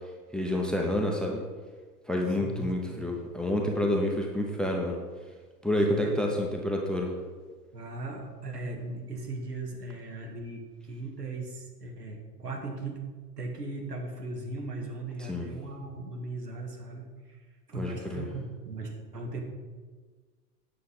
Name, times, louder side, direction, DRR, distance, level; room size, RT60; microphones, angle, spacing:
voice 1, 0.3-1.4 2.1-5.0 5.6-7.1 15.2-15.5 17.8-18.3, left 1 dB, ahead, 1 dB, 0.7 m, -28 dB
voice 2, 2.4-3.0 5.9-6.2 7.7-17.4 17.7-19.4, right 2 dB, 80° right, 1 dB, 1.8 m, -38 dB
8.8 x 6.5 x 4.0 m, 1.4 s
figure-of-eight pair, 95°, 47 cm